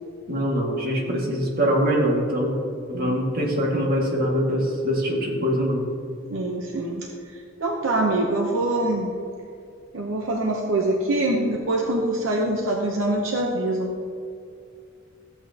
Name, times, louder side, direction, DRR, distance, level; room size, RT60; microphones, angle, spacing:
voice 1, 0.3-2.6 2.9-5.9, equal, 50° right, -2 dB, 1.9 m, -23 dB
voice 2, 6.3-9.1 9.9-13.9, right 1 dB, 75° right, 0 dB, 0.8 m, -24 dB
14.0 x 8.2 x 2.9 m, 2.5 s
head